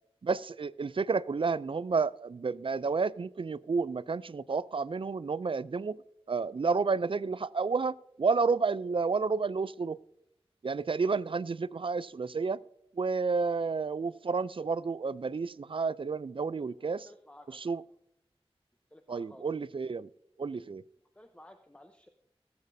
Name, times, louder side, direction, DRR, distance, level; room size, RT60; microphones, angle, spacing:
voice 1, 0.2-6.0 6.3-10.0 10.6-12.6 13.0-17.1 17.5-17.8 19.1-20.1 20.4-20.8, right 4 dB, 60° right, 0.3 m, -31 dB
voice 2, 16.8-17.7 18.9-19.5 21.1-22.1, left 1 dB, 10° left, 0.7 m, -55 dB
18.0 x 8.2 x 2.7 m
wide cardioid pair, 50°, 10 cm